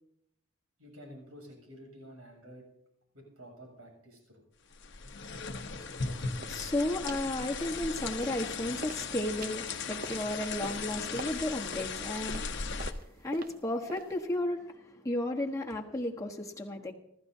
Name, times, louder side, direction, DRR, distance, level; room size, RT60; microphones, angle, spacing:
voice 1, 0.8-2.6 3.1-4.4, equal, 75° right, 1 dB, 7.6 m, -50 dB
sound 1, 4.7-12.9, left 4 dB, 55° left, 1.0 m, -37 dB
voice 2, 5.7-16.9, left 1 dB, 15° left, 0 dB, 1.3 m, -34 dB
sound 2, 6.4-6.6 7.1-7.3 7.6-8.5 8.8-14.3, right 3 dB, 40° right, 0.7 m, -46 dB
30.0 x 13.0 x 2.8 m, 0.80 s
head